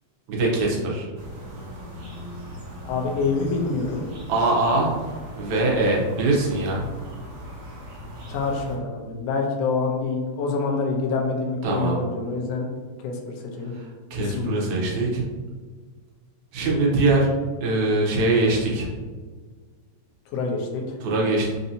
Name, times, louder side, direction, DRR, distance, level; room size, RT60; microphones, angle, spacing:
voice 1, 0.3-1.1 4.3-4.9 5.4-6.8 11.6-12.0 13.7-15.2 16.5-17.3 17.6-18.9 21.0-21.5, right 2 dB, 85° right, -3 dB, 2.2 m, -22 dB
sound 1, 1.2-8.8, equal, 65° right, 2.0 m, -39 dB
voice 2, 2.8-4.0 8.3-12.7 13.0-13.2 13.6-13.7 14.2-14.6 20.3-21.0, left 4 dB, 75° left, -1 dB, 1.6 m, -26 dB
5.2 x 2.7 x 2.7 m, 1.5 s
omnidirectional pair, 3.3 m